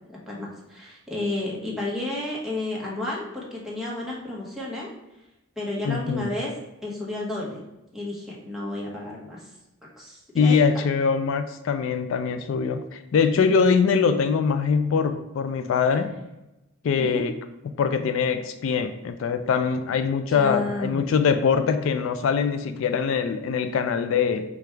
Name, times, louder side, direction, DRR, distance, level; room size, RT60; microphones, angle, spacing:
voice 1, 0.1-4.9 5.6-6.5 6.8-7.6 7.9-9.5 10.0-10.9 17.0-17.3 20.3-21.0, left 2 dB, ahead, -5 dB, 1.1 m, -32 dB
voice 2, 5.8-6.3 10.3-16.1 16.8-17.3 17.8-24.4, left 6 dB, 65° left, 9 dB, 0.3 m, -23 dB
5.0 x 2.4 x 4.4 m, 0.97 s
head